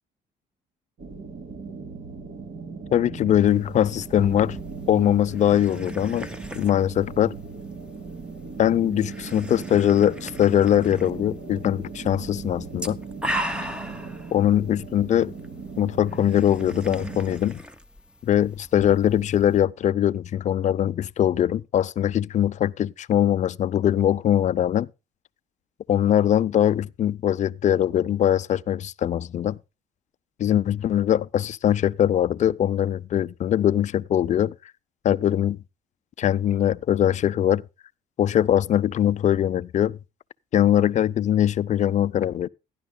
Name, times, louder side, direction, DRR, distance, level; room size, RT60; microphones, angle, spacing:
sound 1, 1.0-17.4, right 4 dB, 55° right, 2.5 m, -38 dB
voice 1, 2.9-4.6 4.9-6.3 6.5-7.4 8.6-13.0 14.3-15.3 15.8-17.6 18.2-24.9 25.9-29.6 30.4-34.5 35.0-35.6 36.2-37.6 38.2-40.0 40.5-42.5, left 10 dB, 45° left, 0.5 m, -22 dB
sound 2, 3.3-19.6, equal, 5° right, 1.0 m, -39 dB
17.0 x 11.0 x 2.2 m
cardioid pair, 110°, 17 cm